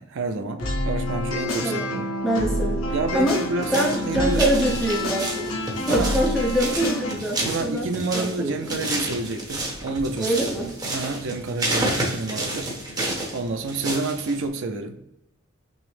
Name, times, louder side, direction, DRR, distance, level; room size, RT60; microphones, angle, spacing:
voice 1, 0.0-2.1 2.9-3.8 4.1-4.4 5.9-6.2 7.4-13.0 13.3-15.0, right 3 dB, 65° right, 6 dB, 0.4 m, -29 dB
sound 1, 0.6-7.2, left 1 dB, 85° left, 1.1 m, -28 dB
voice 2, 2.2-2.8 3.1-3.4 3.7-5.5 5.9-7.9 8.1-8.7 10.2-10.7, right 1 dB, ahead, -4 dB, 0.7 m, -24 dB
sound 2, 3.6-14.5, right 1 dB, 20° right, 1.0 m, -30 dB
6.0 x 2.0 x 3.2 m, 0.85 s
head